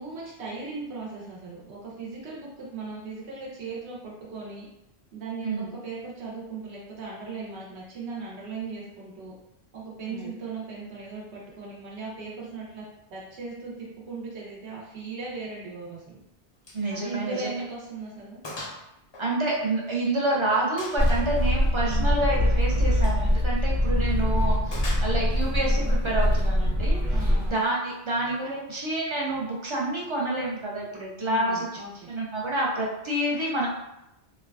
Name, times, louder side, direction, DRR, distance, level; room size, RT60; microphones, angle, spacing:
voice 1, 0.0-4.7 5.1-9.3 9.7-12.8 13.1-16.2 16.9-18.4 21.9-22.2 24.2-24.6 27.1-27.5 31.2-32.1, right 4 dB, 80° right, -5 dB, 1.1 m, -38 dB
Gunshot gunfire, 16.6-16.9 17.2-17.3 17.8-17.9 18.4-18.8 19.1-20.1 20.8-21.3 22.9-23.2 24.7-25.4, left 1 dB, 40° left, 0.4 m, -39 dB
voice 2, 16.7-17.5 19.2-27.0 27.4-31.7 32.1-33.7, right 1 dB, 50° right, -3 dB, 0.3 m, -28 dB
sound 1, 21.0-27.5, left 1 dB, 20° right, 0.8 m, -23 dB
3.1 x 2.2 x 2.3 m, 0.85 s
omnidirectional pair, 1.1 m